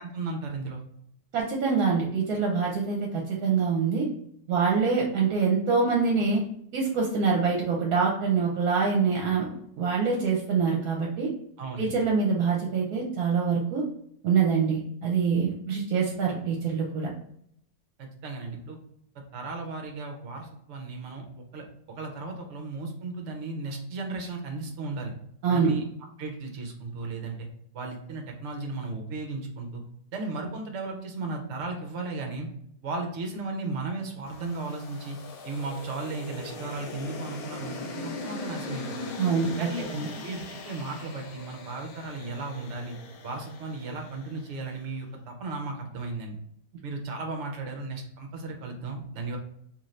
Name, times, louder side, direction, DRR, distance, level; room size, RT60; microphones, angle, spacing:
voice 1, 0.1-0.8 11.6-11.9 18.0-18.8 19.3-25.1 25.5-25.8 26.2-27.5 27.7-29.8 30.1-32.5 32.8-35.2 35.4-39.2 39.6-39.8 40.2-43.0 43.2-46.4 46.8-49.4, right 3 dB, 55° right, 3 dB, 0.9 m, -35 dB
voice 2, 1.3-4.1 4.5-6.4 6.7-9.5 9.8-11.3 11.8-13.8 14.2-17.1 25.4-25.7 39.2-40.1, right 5 dB, 70° right, -1 dB, 1.1 m, -25 dB
sound 1, 34.3-44.6, left 2 dB, 70° left, 1.1 m, -40 dB
2.8 x 2.6 x 3.1 m, 0.70 s
omnidirectional pair, 1.7 m